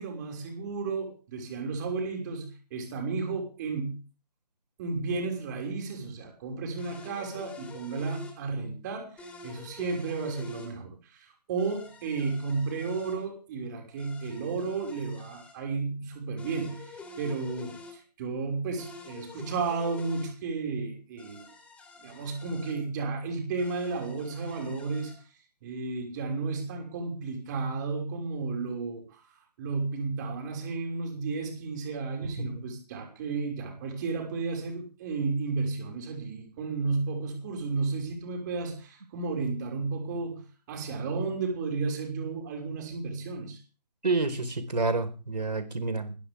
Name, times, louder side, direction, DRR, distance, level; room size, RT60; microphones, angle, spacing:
voice 1, 0.0-4.0 4.8-21.5 22.0-25.1 25.6-29.2 29.6-43.6, right 4 dB, 25° right, 2 dB, 5.8 m, -33 dB
sound 1, 6.8-8.4 9.2-10.7 11.6-13.2 14.0-15.6 16.4-18.0 18.8-20.3 21.2-22.8 23.6-25.2, left 3 dB, 5° left, 3.8 m, -48 dB
voice 2, 44.0-46.2, right 3 dB, 80° right, 9 dB, 4.7 m, -29 dB
21.0 x 18.0 x 3.6 m, 0.36 s
figure-of-eight pair, 155°, 21 cm